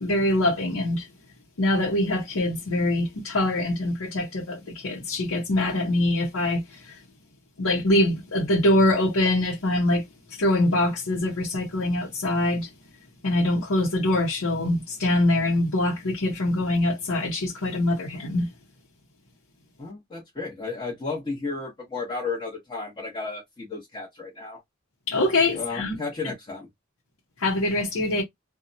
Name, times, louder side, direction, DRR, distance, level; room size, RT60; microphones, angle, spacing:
voice 1, 0.0-1.0 1.6-4.6 4.8-6.6 7.6-10.0 10.4-12.7 13.2-18.5 25.1-25.9 27.4-28.2, left 1 dB, 80° left, 0.8 m, -23 dB
voice 2, 19.8-24.6 25.5-26.7, left 4 dB, 25° left, 1.0 m, -33 dB
2.8 x 2.2 x 2.5 m
head